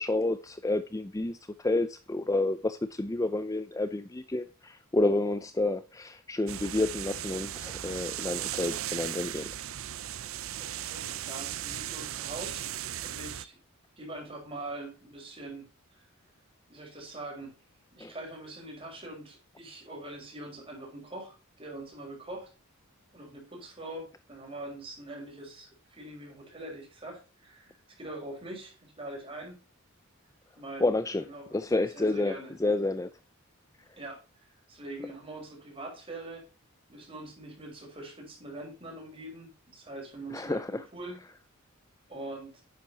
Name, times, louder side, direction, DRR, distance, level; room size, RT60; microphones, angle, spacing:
voice 1, 0.0-9.5 18.0-18.1 30.8-31.2 31.5-33.1 40.3-40.8, left 2 dB, 15° left, 0.4 m, -30 dB
sound 1, 6.5-13.5, right 11 dB, 65° right, 0.6 m, -37 dB
voice 2, 10.6-12.7 13.0-13.6 14.0-16.0 16.7-17.5 17.9-22.5 23.1-29.6 30.6-30.9 31.2-31.5 31.9-32.5 34.0-36.4 36.9-41.2 42.1-42.6, right 2 dB, 25° right, 5.6 m, -43 dB
11.0 x 9.5 x 2.9 m
head